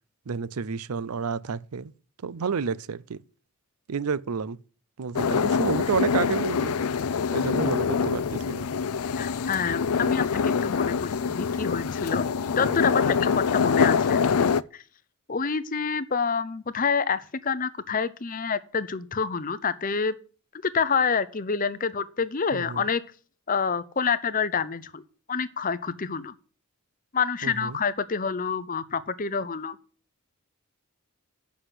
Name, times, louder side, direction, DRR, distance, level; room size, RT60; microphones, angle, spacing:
voice 1, 0.3-1.9 2.2-3.2 3.9-4.6 5.0-6.8 7.3-8.7 22.5-22.9 27.4-27.8, right 5 dB, 80° right, 0.5 m, -30 dB
sound 1, 5.2-14.6, left 6 dB, 75° left, 0.4 m, -25 dB
voice 2, 9.2-12.2 12.6-14.8 15.3-20.1 20.6-23.0 23.5-25.0 25.3-26.3 27.1-29.8, left 5 dB, 35° left, 0.6 m, -27 dB
7.9 x 6.2 x 8.1 m
head